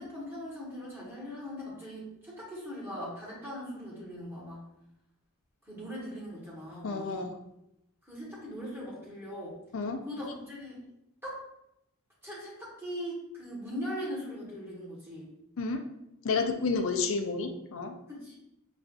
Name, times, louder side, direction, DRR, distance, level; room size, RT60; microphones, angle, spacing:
voice 1, 0.0-4.6 5.6-7.3 8.0-9.6 10.0-10.8 11.2-11.4 12.2-15.3 18.1-18.4, equal, 10° right, -7 dB, 1.3 m, -40 dB
voice 2, 6.8-7.4 9.7-10.0 15.6-15.8 16.2-17.9, left 4 dB, 65° left, 5 dB, 0.4 m, -30 dB
5.4 x 2.5 x 2.4 m, 0.85 s
head